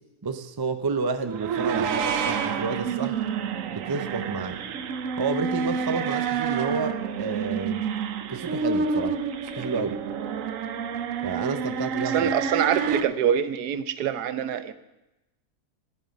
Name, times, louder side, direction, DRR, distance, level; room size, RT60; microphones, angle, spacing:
voice 1, 0.2-3.3 3.7-4.6 5.2-7.8 8.3-9.2 9.5-10.0 11.2-12.3, right 4 dB, 35° right, 8 dB, 0.3 m, -30 dB
sound 1, 1.2-13.0, right 6 dB, 60° right, 1.0 m, -28 dB
voice 2, 12.1-14.7, right 9 dB, 80° right, 13 dB, 1.3 m, -25 dB
15.5 x 9.7 x 5.3 m, 0.96 s
omnidirectional pair, 1.7 m